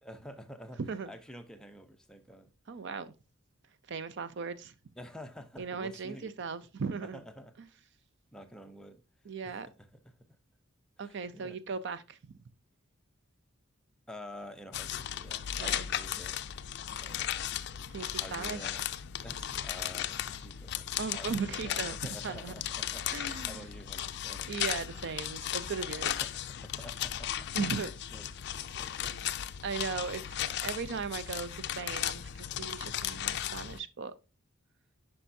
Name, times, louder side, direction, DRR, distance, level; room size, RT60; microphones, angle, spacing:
voice 1, 0.0-0.8 1.1-2.5 5.0-6.3 7.0-7.5 8.3-9.0 9.4-10.3 11.0-11.6 14.1-16.4 16.8-17.5 18.2-18.9 19.2-20.9 21.1-24.5 26.0-27.5 28.1-29.4, equal, 5° left, 0.6 m, -49 dB
voice 2, 0.8-1.1 2.7-3.1 3.9-4.7 5.6-7.2 9.3-9.7 11.0-12.3 15.6-15.8 17.9-18.7 21.0-22.0 22.2-22.5 23.1-23.7 24.5-26.1 27.5-27.9 29.6-34.1, right 5 dB, 55° right, 0.5 m, -37 dB
sound 1, 14.7-33.8, left 11 dB, 50° left, 0.4 m, -36 dB
10.0 x 5.5 x 2.6 m
head